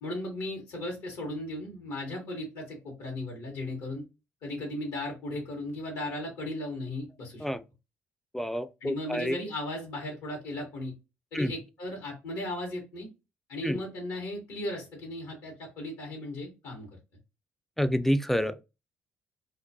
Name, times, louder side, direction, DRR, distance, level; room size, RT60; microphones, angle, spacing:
voice 1, 0.0-4.0 4.4-7.4 8.8-10.9 11.3-13.1 13.5-16.9, left 1 dB, 80° left, 1.0 m, -36 dB
voice 2, 8.3-9.4 11.3-11.5 13.6-13.8 17.8-18.6, equal, 5° left, 0.3 m, -28 dB
2.2 x 2.2 x 2.6 m
supercardioid pair, 55°, 6 cm